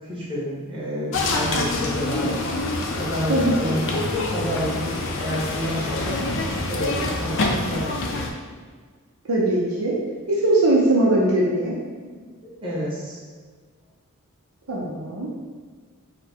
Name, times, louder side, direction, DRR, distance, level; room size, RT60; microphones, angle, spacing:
voice 1, 0.1-2.3 3.0-4.9 5.2-6.2 6.7-8.2 12.0-13.2, equal, 25° right, -8 dB, 1.5 m, -29 dB
sound 1, 1.1-8.3, left 2 dB, 60° left, 0.5 m, -26 dB
voice 2, 9.3-10.0 10.3-11.8 14.7-15.3, right 1 dB, 70° right, -5 dB, 0.8 m, -20 dB
4.1 x 2.2 x 4.4 m, 1.5 s
head